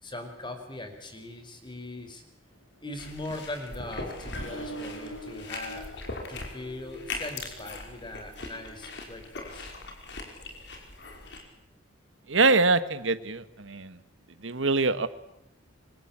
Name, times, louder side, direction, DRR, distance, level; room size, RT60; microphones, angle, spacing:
voice 1, 0.0-2.2 2.8-5.9 6.3-9.7, left 2 dB, 25° left, 7 dB, 5.0 m, -40 dB
Accelerating revving vroom, 2.8-9.4, right 1 dB, 85° left, 7.1 m, -45 dB
sound 1, 3.0-11.4, left 3 dB, 65° left, 5.4 m, -40 dB
voice 2, 12.3-13.9 14.4-15.1, right 3 dB, 80° right, 13 dB, 1.5 m, -24 dB
27.0 x 25.0 x 8.9 m, 0.82 s
head